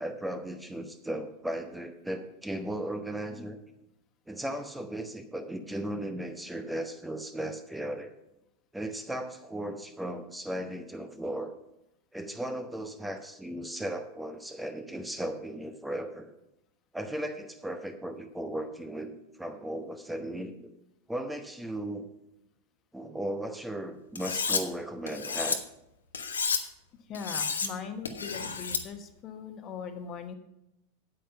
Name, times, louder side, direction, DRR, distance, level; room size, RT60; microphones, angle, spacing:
voice 1, 0.0-3.6 4.3-8.1 8.7-11.5 12.1-16.3 16.9-19.1 19.4-20.7 21.1-22.1 22.9-25.6, right 1 dB, 5° right, 7 dB, 0.9 m, -36 dB
Cutlery silverware, 24.2-24.6 25.1-25.6 26.1-26.6 27.1-27.7 28.1-28.8, left 5 dB, 80° left, 1.0 m, -30 dB
voice 2, 27.1-30.3, left 6 dB, 35° left, 7 dB, 1.2 m, -40 dB
8.9 x 8.3 x 5.7 m, 0.87 s
figure-of-eight pair, 85°, 0 cm